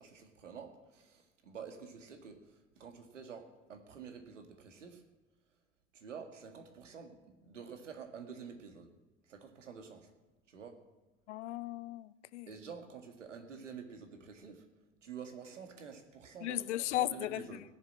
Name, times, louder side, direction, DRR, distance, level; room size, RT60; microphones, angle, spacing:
voice 1, 0.0-5.0 5.9-8.9 9.3-10.1 10.5-10.8 12.5-14.7 15.0-17.6, right 6 dB, 80° right, 2.0 m, -49 dB
voice 2, 11.3-12.5 16.4-17.4, left 15 dB, 70° left, 0.7 m, -36 dB
17.5 x 7.4 x 8.5 m
figure-of-eight pair, 75°, 36 cm